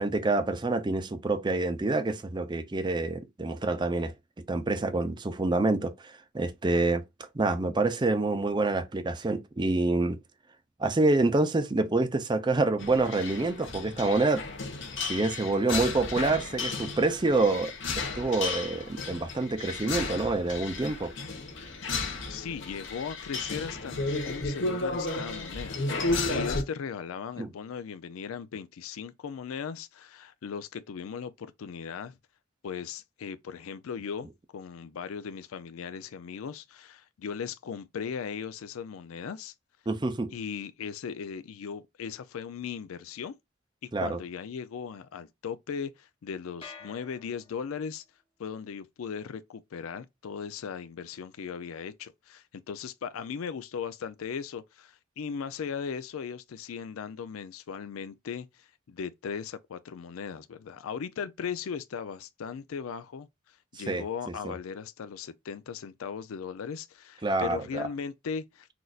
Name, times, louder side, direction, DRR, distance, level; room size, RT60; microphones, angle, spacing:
voice 1, 0.0-4.1 4.5-7.0 7.3-10.2 10.8-14.4 15.0-21.1 26.3-26.4 27.4-27.5 39.9-40.3 43.9-44.2 63.9-64.0 64.4-64.5 67.2-67.9, right 2 dB, 20° right, 0.5 m, -27 dB
sound 1, 12.8-26.6, left 3 dB, 60° left, 1.2 m, -33 dB
voice 2, 22.1-25.8 26.3-32.1 32.6-39.5 40.3-43.3 43.8-48.0 48.4-68.7, left 6 dB, 85° left, 0.4 m, -38 dB
sound 2, 46.6-48.0, left 5 dB, 25° left, 0.8 m, -49 dB
5.9 x 2.6 x 2.3 m
head